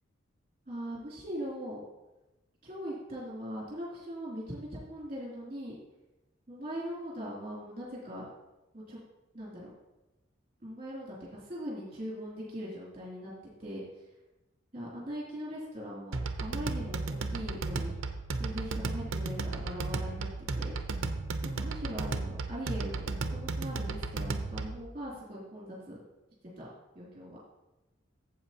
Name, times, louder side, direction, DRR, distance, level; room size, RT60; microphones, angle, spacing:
voice 1, 0.7-1.8 2.6-5.7 6.5-8.2 8.7-9.0 9.3-9.7 10.6-13.3 13.6-14.0 14.7-17.0 17.3-17.9 18.4-20.3 20.5-21.0 21.4-26.0 26.6-26.7 26.9-27.4, equal, 30° right, -6 dB, 2.7 m, -40 dB
sound 1, 16.1-24.9, right 3 dB, 70° right, 0.6 m, -34 dB
13.0 x 7.6 x 2.8 m, 1.0 s
head